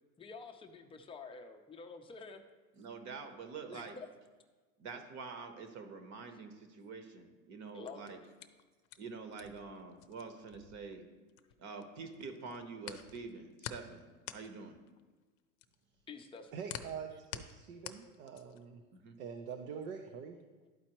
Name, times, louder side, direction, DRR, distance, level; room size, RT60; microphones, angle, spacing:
voice 1, 0.2-2.4 3.7-4.1 7.7-8.1 16.1-16.6 20.6-20.7, left 4 dB, 15° left, 5 dB, 0.5 m, -49 dB
voice 2, 2.8-4.0 4.8-8.2 9.0-11.1 11.6-14.0 14.3-14.8 18.9-19.2, right 4 dB, 40° right, 7 dB, 1.1 m, -46 dB
sound 1, 7.7-11.8 12.1-18.7, left 11 dB, 60° left, 0.6 m, -48 dB
voice 3, 16.5-18.8 19.2-20.4, right 6 dB, 70° right, 4 dB, 0.8 m, -44 dB
12.0 x 4.2 x 3.0 m, 1.3 s
supercardioid pair, 115°, 42 cm